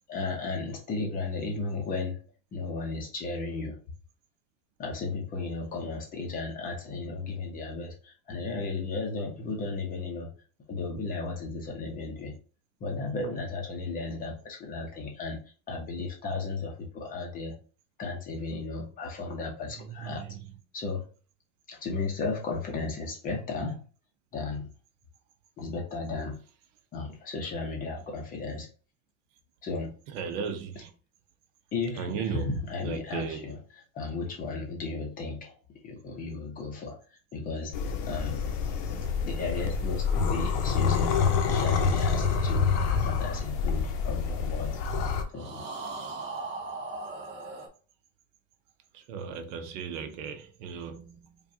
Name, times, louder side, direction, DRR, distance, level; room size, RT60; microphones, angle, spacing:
voice 1, 0.1-2.2 2.5-3.8 4.8-10.3 10.7-12.3 12.8-15.4 15.7-17.6 18.0-20.2 20.7-21.1 21.7-23.8 24.3-24.7 25.6-26.4 26.9-28.7 29.6-30.0 31.7-33.6 33.9-35.5 35.8-37.0 37.3-37.8 38.0-38.4 39.2-42.7 43.0-44.8 45.3-45.6, left 3 dB, 20° left, 0.7 m, -34 dB
voice 2, 19.7-20.5 30.1-30.9 32.0-33.5 48.9-51.4, right 6 dB, 65° right, 0.8 m, -37 dB
sound 1, 37.7-45.2, left 5 dB, 55° left, 0.8 m, -27 dB
sound 2, 38.7-44.3 45.3-47.7, right 3 dB, 30° right, 0.7 m, -42 dB
5.1 x 2.4 x 2.7 m
cardioid pair, 175°, 39 cm